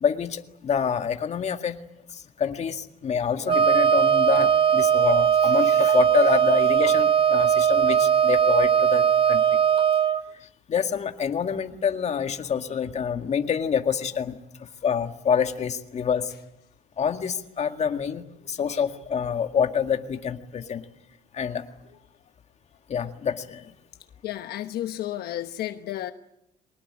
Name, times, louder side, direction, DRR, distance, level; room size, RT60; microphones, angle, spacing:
voice 1, 0.0-1.8 2.4-9.4 10.7-14.4 14.8-16.3 17.0-18.2 18.5-20.8 21.3-21.6 22.9-23.6, left 7 dB, 40° left, 7 dB, 2.0 m, -26 dB
Wind instrument woodwind instrument, 3.5-10.2, right 8 dB, 30° right, 1.2 m, -19 dB
voice 2, 24.2-26.1, left 13 dB, 70° left, 8 dB, 1.1 m, -32 dB
23.5 x 20.0 x 9.9 m, 0.84 s
cardioid pair, 110°, 17 cm